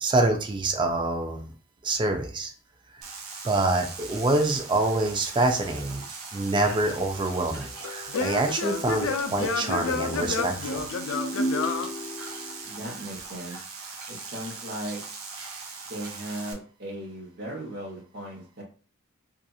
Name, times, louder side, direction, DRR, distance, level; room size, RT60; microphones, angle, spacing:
voice 1, 0.0-1.5 1.8-2.5 3.4-6.0 6.3-10.8, right 2 dB, 20° right, 4 dB, 0.4 m, -26 dB
sound 1, 3.0-16.5, right 4 dB, 80° right, 0.6 m, -40 dB
Singing / Plucked string instrument, 6.9-12.7, left 3 dB, 65° left, 0.4 m, -30 dB
voice 2, 12.6-13.6 14.1-15.0 15.9-18.6, right 1 dB, 50° right, -3 dB, 1.0 m, -37 dB
2.8 x 2.4 x 2.3 m, 0.40 s
head